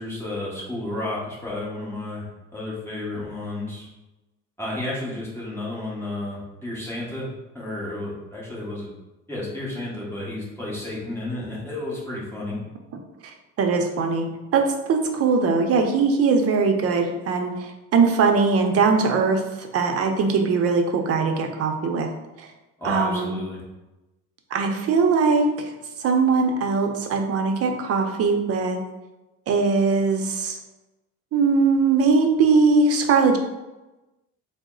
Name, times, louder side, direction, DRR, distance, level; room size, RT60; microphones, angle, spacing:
voice 1, 0.0-3.9 4.6-8.9 9.3-12.6 22.8-23.6, left 1 dB, 10° left, -6 dB, 1.2 m, -32 dB
voice 2, 13.6-14.3 14.5-22.1 22.4-22.5 22.8-23.4 24.5-25.7 26.0-28.8 29.5-30.6 31.3-33.4, right 4 dB, 50° right, 4 dB, 0.6 m, -21 dB
3.9 x 2.0 x 3.7 m, 1.0 s
cardioid pair, 110°, 31 cm